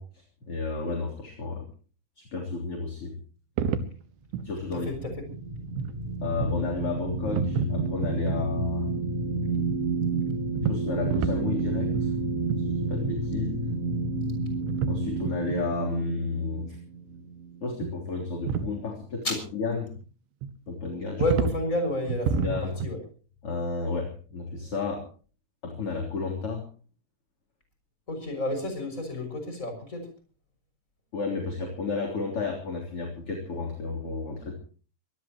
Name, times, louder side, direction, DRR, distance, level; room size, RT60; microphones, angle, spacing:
voice 1, 0.0-1.7 2.2-3.2 4.4-4.9 6.2-8.9 10.7-12.1 12.6-13.6 14.9-16.8 17.6-19.3 19.5-19.9 20.7-21.2 22.4-22.8 23.4-25.1 25.6-26.6 31.1-34.6, left 4 dB, 35° left, 1 dB, 3.8 m, -32 dB
sound 1, 3.6-4.0 4.3-4.5 5.0-5.2 5.7-5.9 6.4-6.6 6.9-7.1 7.3-8.5 10.6-11.7 11.9-12.2 12.5-12.7 13.0-13.2 13.4-13.5 13.7-13.8 14.6-15.0 15.2-15.6 17.8-18.0 18.2-18.7 20.4-20.5 21.2-21.6 22.1-22.9, right 6 dB, 90° right, 3.7 m, -29 dB
sound 2, 4.5-18.0, right 3 dB, 25° right, 1.9 m, -30 dB
voice 2, 4.7-5.2 19.2-19.4 21.2-23.0 28.1-30.1, left 1 dB, 15° left, 6 dB, 6.5 m, -30 dB
24.5 x 19.0 x 3.0 m, 0.39 s
omnidirectional pair, 5.2 m